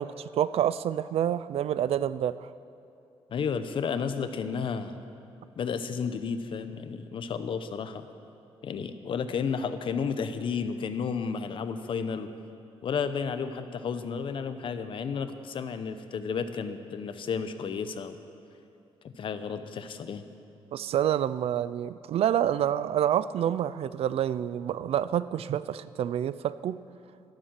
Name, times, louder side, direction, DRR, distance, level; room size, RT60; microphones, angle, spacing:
voice 1, 0.0-2.5 20.7-26.8, right 10 dB, 70° right, 16 dB, 0.4 m, -28 dB
voice 2, 3.3-5.0 5.6-8.1 8.6-12.3 12.8-18.2 19.0-20.3, left 6 dB, 55° left, 10 dB, 0.8 m, -32 dB
13.0 x 12.5 x 7.5 m, 2.6 s
wide cardioid pair, 160°, 10 cm